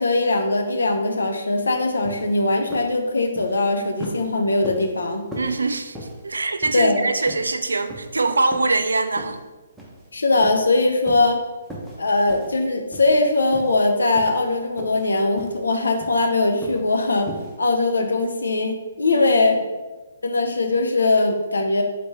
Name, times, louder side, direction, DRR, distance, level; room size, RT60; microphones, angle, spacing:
voice 1, 0.0-5.2 6.7-7.1 10.1-11.4 12.0-17.3 17.6-19.6 20.2-21.8, left 2 dB, 65° left, 4 dB, 0.5 m, -20 dB
sound 1, 1.6-1.7 2.0-2.3 2.7-3.0 3.3-3.6 4.0-4.3 4.6-4.9 5.3-5.6 5.9-6.2 6.6-7.0 7.3-7.5 7.9-8.1 8.5-8.8 9.2-9.4 9.8-10.1 10.4-10.7 11.0-11.3 11.7-12.0 12.3-12.6 12.9-13.2 13.5-13.8 14.1-14.5 14.8-15.1 15.4-15.6 16.0-16.3 16.6-16.9 17.3-17.5, equal, ahead, 0.7 m, -36 dB
voice 2, 5.4-6.0 6.2-9.4 19.1-19.4, right 3 dB, 70° right, 9 dB, 0.3 m, -23 dB
4.1 x 3.2 x 3.0 m, 1.2 s
figure-of-eight pair, 130°, 0 cm